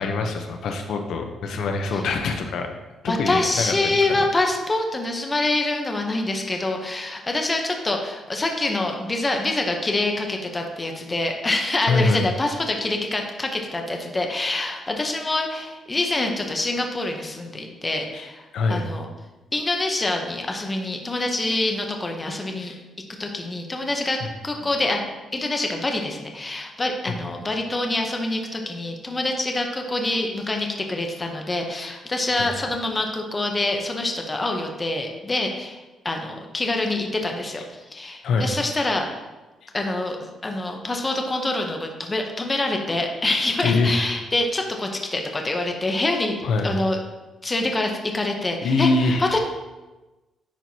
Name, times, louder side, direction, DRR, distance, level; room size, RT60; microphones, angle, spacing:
voice 1, 0.0-2.7 3.0-4.0 11.9-12.2 18.1-18.3 18.5-18.8 22.6-22.8 38.2-38.5 43.6-43.9 46.4-46.7 48.6-49.2, left 3 dB, 65° left, 5 dB, 0.6 m, -23 dB
voice 2, 3.1-19.1 19.5-22.7 23.2-25.0 25.3-37.6 37.9-39.2 39.7-40.2 40.4-46.4 46.6-47.0 47.4-49.4, left 2 dB, 20° left, 3 dB, 0.7 m, -26 dB
10.0 x 4.5 x 2.7 m, 1.1 s
cardioid pair, 150°, 0 cm